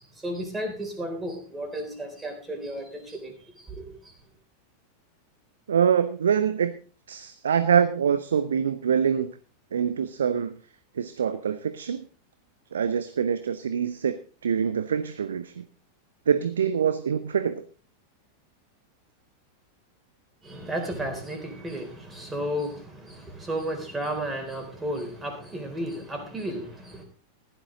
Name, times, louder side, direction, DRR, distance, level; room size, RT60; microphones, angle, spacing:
voice 1, 0.0-4.2 20.4-27.0, right 1 dB, 10° right, 3.8 m, -33 dB
voice 2, 5.7-6.7 7.1-9.3 9.7-10.5 11.0-12.1 12.7-14.2 14.4-15.6 16.3-17.6, right 7 dB, 65° right, 0.7 m, -25 dB
15.0 x 11.0 x 3.8 m
figure-of-eight pair, 90°, 0 cm